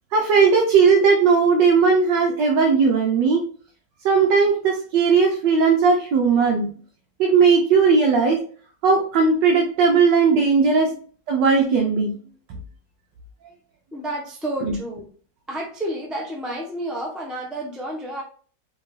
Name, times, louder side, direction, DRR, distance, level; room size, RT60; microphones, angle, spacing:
voice 1, 0.1-3.4 4.0-6.7 7.2-8.4 8.8-10.9 11.3-12.1 14.6-14.7, right 5 dB, 75° right, 1 dB, 1.4 m, -17 dB
voice 2, 13.9-15.1 15.5-18.2, right 1 dB, ahead, -1 dB, 0.4 m, -30 dB
5.0 x 2.9 x 3.2 m, 0.43 s
omnidirectional pair, 1.9 m